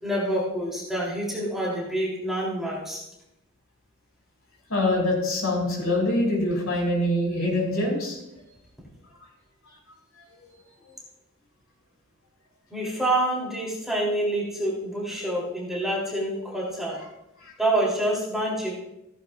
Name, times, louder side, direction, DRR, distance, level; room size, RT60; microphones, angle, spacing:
voice 1, 0.0-3.0 12.7-17.1 17.6-18.8, right 1 dB, ahead, -5 dB, 3.3 m, -27 dB
voice 2, 4.7-8.2 17.4-17.5, left 1 dB, 70° left, -2 dB, 6.0 m, -24 dB
16.0 x 15.5 x 2.5 m, 0.88 s
head